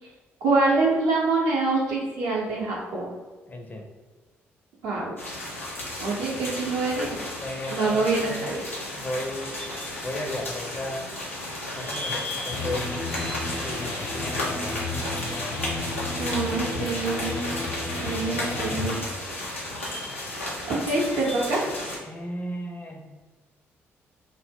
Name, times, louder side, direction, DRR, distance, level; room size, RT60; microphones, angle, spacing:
voice 1, 0.4-3.1 4.8-5.1 6.0-7.2 7.7-8.6 16.2-17.5 18.0-19.0 20.7-21.6, right 3 dB, 65° right, -4 dB, 0.6 m, -25 dB
voice 2, 3.5-3.9 7.4-8.6 8.9-9.8 10.0-11.1 11.7-13.0 13.6-15.0 22.0-23.2, left 1 dB, 25° left, 2 dB, 0.5 m, -35 dB
sound 1, 5.2-22.0, left 1 dB, 90° left, 0.4 m, -33 dB
Electric guitar, 12.5-18.9, left 2 dB, 60° left, 0.7 m, -32 dB
2.0 x 2.0 x 3.4 m, 1.3 s
figure-of-eight pair, 40°, 7 cm